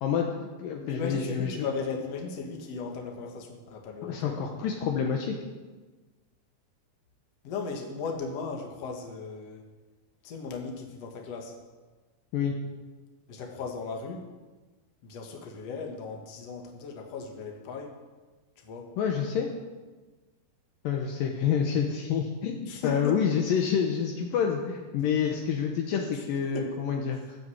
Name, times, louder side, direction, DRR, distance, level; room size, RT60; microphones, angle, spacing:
voice 1, 0.0-1.6 4.0-5.4 12.3-12.6 19.0-19.5 20.8-27.4, left 7 dB, 70° left, 2 dB, 2.6 m, -28 dB
voice 2, 0.8-4.4 7.4-9.6 10.2-11.5 13.3-14.3 15.0-17.9 18.6-18.9 22.6-23.1 26.1-26.2 26.5-26.7, left 4 dB, 50° left, 1 dB, 2.7 m, -36 dB
15.5 x 9.4 x 8.0 m, 1.3 s
omnidirectional pair, 4.4 m